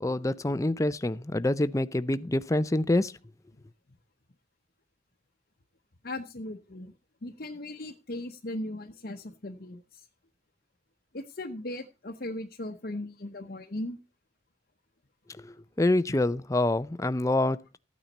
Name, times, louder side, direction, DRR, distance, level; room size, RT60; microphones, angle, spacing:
voice 1, 0.0-3.1 15.4-17.8, left 2 dB, 15° left, 0.5 m, -26 dB
voice 2, 6.0-6.9 7.2-10.1 11.1-14.0, left 1 dB, 50° left, 0.9 m, -38 dB
14.5 x 9.1 x 4.1 m
head